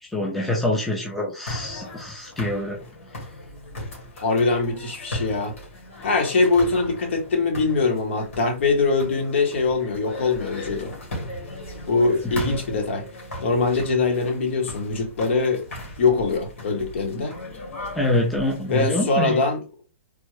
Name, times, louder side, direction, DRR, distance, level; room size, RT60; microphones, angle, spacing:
voice 1, 0.0-2.8 17.9-19.4, left 1 dB, ahead, 0.4 m, -25 dB
sound 1, 1.5-18.8, left 1 dB, 80° left, 1.7 m, -37 dB
voice 2, 4.2-5.5 6.0-10.9 11.9-13.1 13.4-15.7 16.0-17.3 18.7-19.6, left 3 dB, 65° left, 1.0 m, -22 dB
3.4 x 2.1 x 3.1 m
hypercardioid pair, 165°, 7 cm